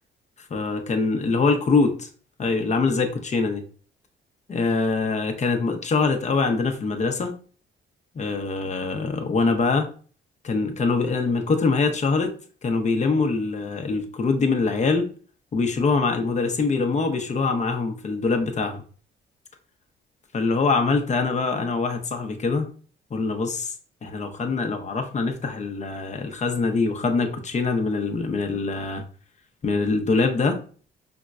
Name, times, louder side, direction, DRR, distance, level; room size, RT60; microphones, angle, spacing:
voice 1, 0.5-2.1 2.4-3.6 4.5-7.3 8.1-9.9 10.4-15.1 15.5-18.8 20.3-22.7 23.1-23.7 24.0-29.0 29.6-30.6, left 4 dB, 35° left, 5 dB, 0.7 m, -24 dB
5.0 x 2.1 x 2.4 m, 0.40 s
cardioid pair, 90°, 20 cm